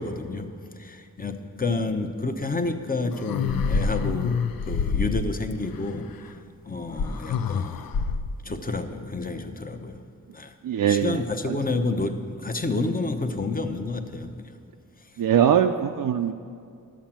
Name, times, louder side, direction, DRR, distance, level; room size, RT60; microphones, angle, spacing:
voice 1, 0.0-6.3 6.6-7.9 8.4-10.0 10.3-10.5 10.9-14.5, left 3 dB, 25° left, 6 dB, 0.8 m, -29 dB
sound 1, 3.1-5.6 7.0-8.4, left 5 dB, 85° left, 0.5 m, -27 dB
voice 2, 10.6-11.6 11.8-11.9 15.2-16.3, right 9 dB, 70° right, 5 dB, 0.5 m, -22 dB
11.5 x 7.3 x 7.4 m, 2.3 s
wide cardioid pair, 100°, 34 cm